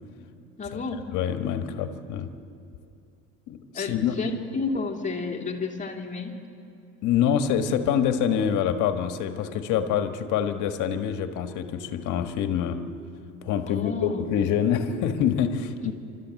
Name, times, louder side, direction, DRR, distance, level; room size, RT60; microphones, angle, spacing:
voice 1, 0.6-1.1 3.7-6.3 13.7-14.3, left 4 dB, 20° left, 2 dB, 2.5 m, -31 dB
voice 2, 1.1-2.3 3.5-4.1 7.0-12.8 13.4-15.9, left 8 dB, 60° left, 7 dB, 1.6 m, -26 dB
29.0 x 13.5 x 7.7 m, 2.6 s
supercardioid pair, 115°, 35 cm